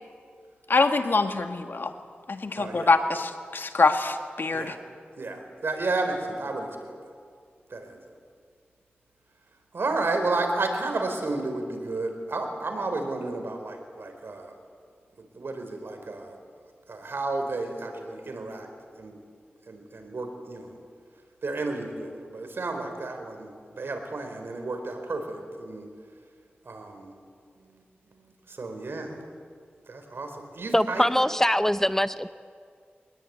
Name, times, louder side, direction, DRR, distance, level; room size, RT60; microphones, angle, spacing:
voice 1, 0.7-1.9 2.3-4.8, left 3 dB, 65° left, 6 dB, 1.8 m, -24 dB
voice 2, 2.6-2.9 4.5-4.8 5.2-6.7 7.7-8.0 9.7-14.5 15.3-16.3 16.9-18.7 19.0-19.2 19.7-20.8 21.4-25.9 26.7-27.1 28.5-29.2 29.9-31.0, right 3 dB, 75° right, 4 dB, 4.3 m, -32 dB
voice 3, 30.7-32.3, equal, 10° left, 12 dB, 0.7 m, -23 dB
23.5 x 20.0 x 9.5 m, 2.1 s
wide cardioid pair, 55°, 4 cm